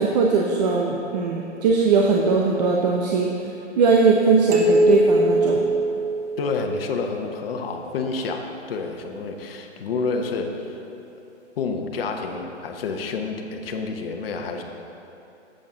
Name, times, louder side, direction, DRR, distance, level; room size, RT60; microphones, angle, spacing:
voice 1, 0.0-3.3 3.8-5.6, right 4 dB, 35° right, 0 dB, 0.6 m, -20 dB
sound 1, 4.5-6.9, right 1 dB, 70° right, 1.5 m, -20 dB
voice 2, 6.4-10.6 11.6-14.6, left 4 dB, 55° left, 4 dB, 1.0 m, -29 dB
10.0 x 7.8 x 3.8 m, 2.9 s
hypercardioid pair, 150°, 36 cm